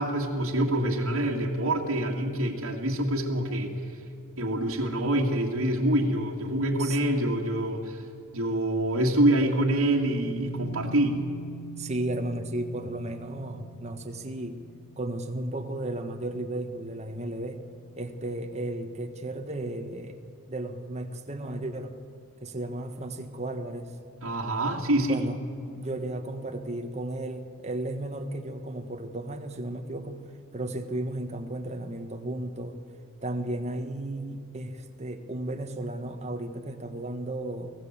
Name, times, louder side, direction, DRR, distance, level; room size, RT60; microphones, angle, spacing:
voice 1, 0.0-3.7 4.4-8.0 8.3-11.2 24.2-25.3, right 1 dB, 80° right, -3 dB, 2.0 m, -26 dB
sound 1, 10.2-19.7, right 5 dB, 15° right, 3.7 m, -47 dB
voice 2, 11.8-14.6 15.0-17.6 18.0-20.2 20.5-21.9 22.4-23.9 25.0-25.4 25.8-30.3 30.5-32.8 33.2-37.7, right 1 dB, 30° right, 5 dB, 1.5 m, -34 dB
24.0 x 16.5 x 7.4 m, 2.4 s
head